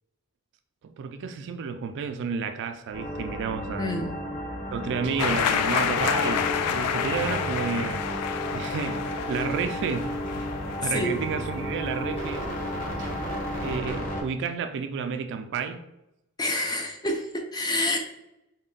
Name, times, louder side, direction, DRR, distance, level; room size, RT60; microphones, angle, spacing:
voice 1, 0.8-3.9 4.7-8.0 8.5-10.5 10.8-13.2 13.6-15.8, right 6 dB, 55° right, 0.3 m, -31 dB
sound 1, 2.9-14.2, equal, 40° left, 0.9 m, -33 dB
voice 2, 3.8-4.1 10.9-11.2 16.4-18.1, left 1 dB, 20° left, 0.5 m, -28 dB
sound 2, 5.2-11.8, left 7 dB, 85° left, 0.3 m, -29 dB
4.1 x 2.1 x 3.7 m
head